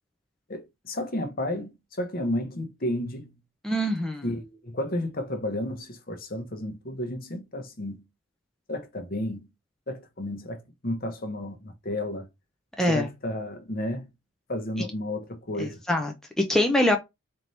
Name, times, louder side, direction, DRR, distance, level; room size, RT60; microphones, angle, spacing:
voice 1, 0.5-3.3 4.2-8.0 8.7-9.5 9.9-12.3 12.9-14.1 14.5-15.8, left 1 dB, 45° left, 0.9 m, -32 dB
voice 2, 3.6-4.2 12.8-13.1 15.6-17.0, left 1 dB, 5° left, 0.4 m, -24 dB
4.3 x 2.7 x 3.3 m
head